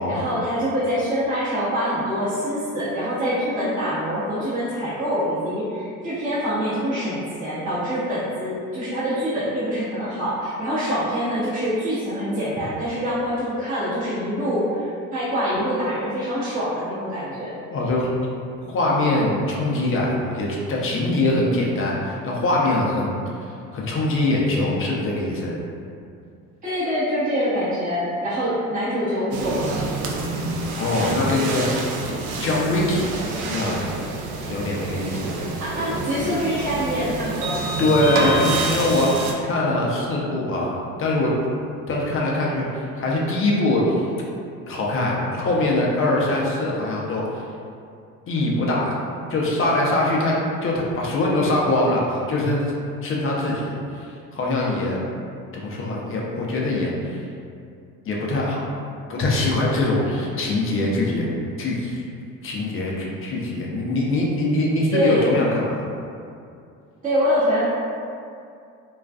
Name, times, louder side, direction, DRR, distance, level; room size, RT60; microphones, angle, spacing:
voice 1, 0.0-17.6 26.6-29.8 35.6-37.6 64.9-65.3 67.0-67.6, equal, 20° right, -12 dB, 0.8 m, -25 dB
voice 2, 17.7-18.1 18.7-23.2 23.7-25.6 30.8-31.9 32.4-33.1 33.5-34.0 34.5-35.3 37.8-41.3 41.9-44.1 44.7-47.4 48.3-48.9 49.3-50.3 50.6-52.6 53.0-55.0 55.5-57.2 58.1-58.6 59.1-61.3 61.6-62.0 62.4-65.8, left 2 dB, 30° left, -3 dB, 0.5 m, -23 dB
sound 1, 29.3-39.3, right 2 dB, 70° right, 0.5 m, -27 dB
2.3 x 2.3 x 2.3 m, 2.4 s
hypercardioid pair, 75°, 42 cm